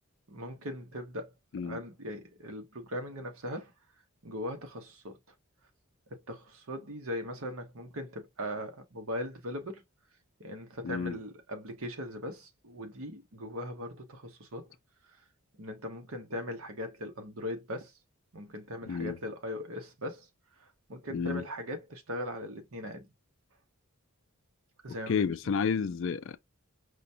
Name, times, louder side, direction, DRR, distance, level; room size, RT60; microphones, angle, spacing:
voice 1, 0.3-1.3 1.6-3.7 4.2-5.2 6.1-9.8 10.4-14.7 15.6-17.9 18.3-20.3 20.6-23.1 24.8-25.3, left 1 dB, 70° right, 1.0 m, -39 dB
voice 2, 10.8-11.2 18.9-19.2 21.1-21.4 25.1-26.4, left 6 dB, 60° left, 0.3 m, -31 dB
4.9 x 2.2 x 2.7 m
head